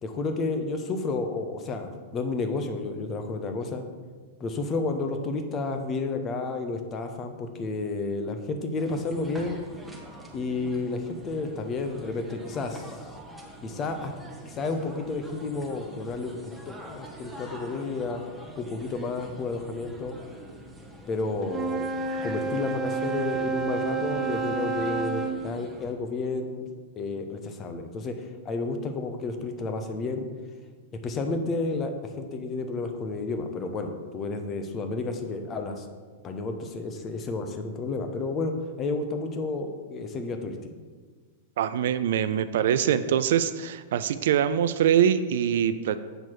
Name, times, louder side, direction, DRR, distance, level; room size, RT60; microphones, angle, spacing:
voice 1, 0.0-3.8 4.4-9.6 10.3-12.9 13.6-14.1 14.5-18.2 18.6-20.2 21.1-21.9 22.2-26.7 27.0-30.3 31.0-35.9 36.2-40.6, left 3 dB, 30° left, 6 dB, 1.0 m, -31 dB
sound 1, 8.8-25.9, right 1 dB, 5° right, 1.2 m, -46 dB
Wind instrument woodwind instrument, 21.4-25.4, right 4 dB, 25° right, 0.8 m, -29 dB
voice 2, 41.6-46.0, right 9 dB, 60° right, 12 dB, 0.4 m, -23 dB
7.9 x 6.0 x 4.5 m, 1.5 s
figure-of-eight pair, 95°, 0 cm